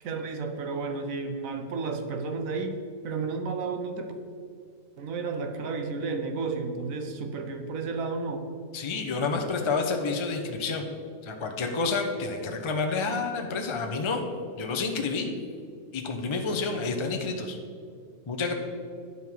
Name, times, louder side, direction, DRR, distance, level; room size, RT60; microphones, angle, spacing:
voice 1, 0.0-2.8 3.0-4.1 5.0-8.4 16.5-16.6, right 4 dB, 75° right, 6 dB, 1.2 m, -32 dB
voice 2, 8.7-10.8 11.2-14.2 14.6-15.3 15.9-17.6 18.3-18.5, left 4 dB, 35° left, 3 dB, 0.4 m, -29 dB
9.9 x 5.5 x 4.6 m, 2.2 s
omnidirectional pair, 1.5 m